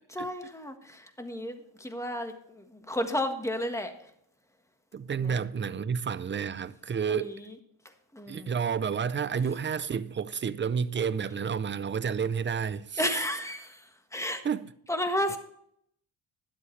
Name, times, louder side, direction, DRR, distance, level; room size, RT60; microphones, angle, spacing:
voice 1, 0.1-3.9 5.2-5.4 7.1-7.5 8.1-8.5 13.0-14.4 14.9-15.4, left 1 dB, 5° left, 1.5 m, -32 dB
voice 2, 4.9-7.3 8.3-13.1 14.4-14.7, right 6 dB, 30° right, 0.5 m, -30 dB
12.5 x 11.5 x 3.2 m
cardioid pair, 125°, 42 cm